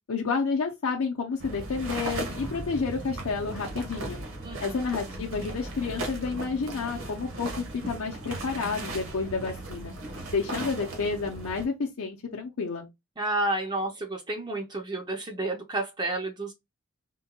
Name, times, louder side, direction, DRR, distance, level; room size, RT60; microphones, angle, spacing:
voice 1, 0.1-4.2 4.6-9.9 10.3-12.9, left 4 dB, 70° left, 0.6 m, -30 dB
sound 1, 1.4-11.7, right 2 dB, 60° right, 0.9 m, -37 dB
voice 2, 4.4-4.8 13.2-16.5, right 2 dB, 20° right, 0.4 m, -31 dB
3.7 x 2.2 x 2.8 m
head